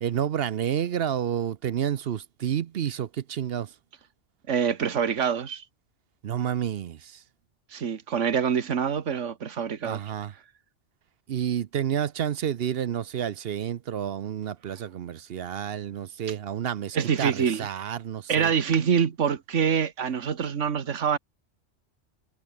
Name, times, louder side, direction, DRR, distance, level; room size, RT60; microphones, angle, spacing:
voice 1, 0.0-3.7 6.2-7.2 9.8-10.3 11.3-18.5, right 9 dB, 60° right, 0.8 m, -30 dB
voice 2, 4.5-5.6 7.7-10.0 16.9-17.7 18.3-21.2, right 7 dB, 75° right, 1.7 m, -25 dB
omnidirectional pair, 1.2 m